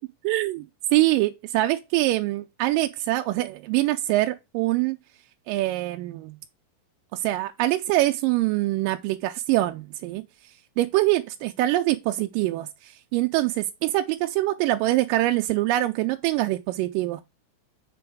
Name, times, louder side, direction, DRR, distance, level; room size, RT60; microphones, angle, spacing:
voice 1, 0.2-0.7 0.9-5.0 5.5-6.4 7.1-10.2 10.8-17.2, right 16 dB, 80° right, 2.0 m, -24 dB
7.7 x 3.5 x 4.6 m
omnidirectional pair, 4.3 m